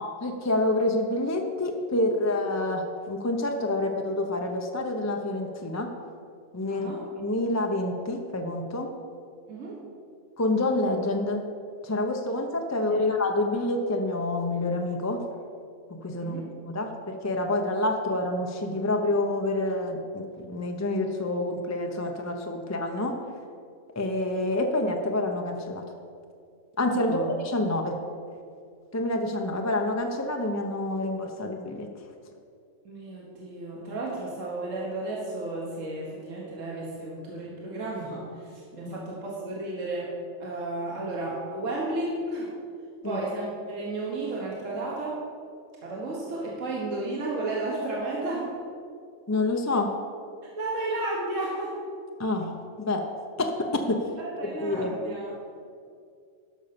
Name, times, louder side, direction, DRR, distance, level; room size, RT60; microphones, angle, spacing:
voice 1, 0.0-5.9 6.5-6.9 7.2-8.9 10.4-11.4 11.8-15.2 15.9-23.2 23.9-25.8 26.8-28.0 28.9-32.1 38.8-39.0 43.0-43.2 49.3-49.9 52.2-53.0 53.4-54.0 54.6-54.9, left 2 dB, 20° left, 3 dB, 0.5 m, -28 dB
voice 2, 6.7-7.0 9.5-9.8 12.9-13.0 16.2-16.5 26.9-27.3 32.9-40.1 40.4-42.5 43.0-45.2 45.8-48.5 50.6-51.7 54.2-55.3, right 2 dB, 65° right, -4 dB, 1.9 m, -33 dB
12.5 x 5.5 x 6.9 m, 2.4 s
omnidirectional pair, 1.4 m